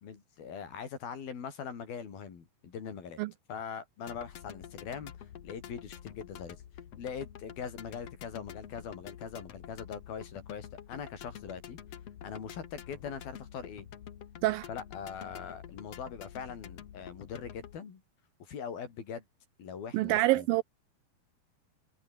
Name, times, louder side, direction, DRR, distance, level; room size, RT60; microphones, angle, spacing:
voice 1, 0.0-3.2 3.5-6.6 7.0-11.8 12.2-13.9 14.7-18.0 18.4-19.3 19.6-20.5, left 7 dB, 70° left, 5.5 m, -42 dB
sound 1, 4.1-17.8, left 9 dB, 55° left, 2.1 m, -48 dB
voice 2, 19.9-20.6, right 18 dB, 80° right, 2.1 m, -26 dB
omnidirectional pair, 4.4 m